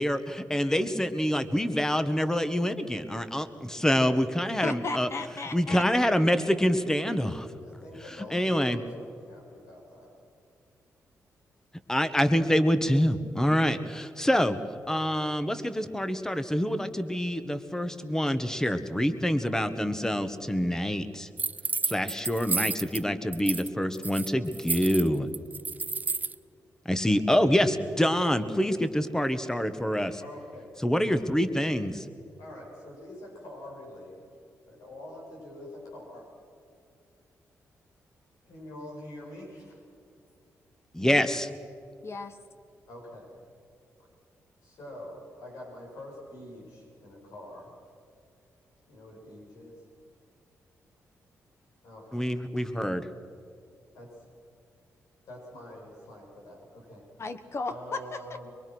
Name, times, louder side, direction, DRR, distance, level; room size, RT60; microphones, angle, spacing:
voice 1, 0.0-5.1 5.5-7.5 8.3-8.8 11.9-14.6 14.9-21.3 21.9-25.3 26.9-30.2 30.8-32.1 40.9-41.5 52.1-53.0, equal, 10° left, 10 dB, 1.6 m, -26 dB
voice 2, 4.6-6.1 42.0-42.4 57.2-58.2, left 3 dB, 50° left, 9 dB, 1.3 m, -35 dB
voice 3, 7.6-10.1 30.2-30.7 32.4-34.4 34.7-36.3 38.5-39.8 42.9-43.3 44.6-47.7 48.9-49.9 51.8-52.2 53.9-54.1 55.2-57.1 57.7-58.5, left 1 dB, 85° left, -2 dB, 7.6 m, -45 dB
sound 1, 21.4-23.0 23.3-23.7 23.9-26.4, right 4 dB, 30° right, 0.5 m, -31 dB
23.5 x 23.0 x 6.3 m, 2.3 s
cardioid pair, 70°, 6 cm